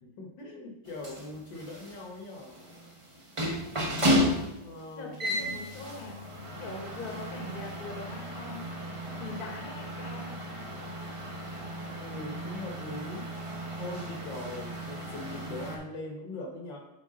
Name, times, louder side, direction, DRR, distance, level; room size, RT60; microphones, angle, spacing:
voice 1, 0.0-2.6 4.6-5.5 12.0-13.3 13.8-16.9, left 2 dB, 60° left, 1 dB, 1.7 m, -41 dB
sound 1, 0.9-15.8, equal, 25° right, 0.6 m, -34 dB
voice 2, 4.9-6.2 6.6-8.7 9.2-10.3, left 2 dB, 30° left, 0 dB, 1.1 m, -41 dB
7.6 x 4.7 x 3.8 m, 0.93 s
omnidirectional pair, 2.3 m